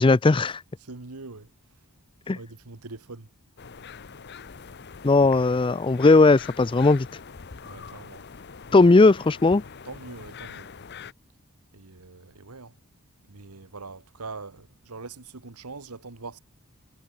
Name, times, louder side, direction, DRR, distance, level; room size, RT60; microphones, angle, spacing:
voice 1, 0.0-0.6 2.3-2.4 5.0-7.1 8.7-9.6, left 3 dB, 20° left, 0.4 m, -17 dB
voice 2, 0.8-1.5 2.3-3.3 7.6-8.2 9.8-10.7 11.7-12.7 13.3-16.4, right 3 dB, 85° right, 1.5 m, -42 dB
sound 1, 3.6-11.1, left 5 dB, 50° left, 0.7 m, -43 dB
head